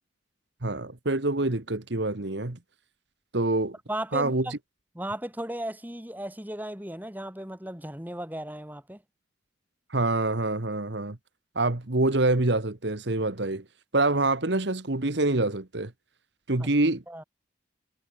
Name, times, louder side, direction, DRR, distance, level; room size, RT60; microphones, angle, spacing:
voice 1, 0.6-2.6 3.3-3.7 4.1-4.5 9.9-11.2 11.5-13.6 13.9-15.9 16.5-17.0, right 2 dB, 60° right, 1.5 m, -26 dB
voice 2, 3.9-4.6 4.9-9.0 17.1-17.2, right 1 dB, 10° right, 2.5 m, -35 dB
head